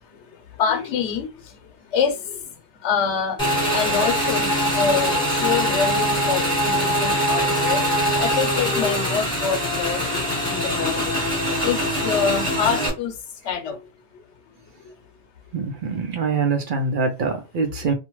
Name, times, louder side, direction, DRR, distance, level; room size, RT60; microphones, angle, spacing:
voice 1, 0.6-1.3 1.9-2.4 2.8-7.8 8.2-11.1 11.5-13.1 13.4-13.8, left 6 dB, 85° left, 0.9 m, -26 dB
Motorcycle / Engine, 3.4-12.9, equal, 5° left, 1.1 m, -22 dB
voice 2, 15.5-17.9, right 4 dB, 55° right, 0.7 m, -24 dB
2.4 x 2.2 x 3.0 m
omnidirectional pair, 1.1 m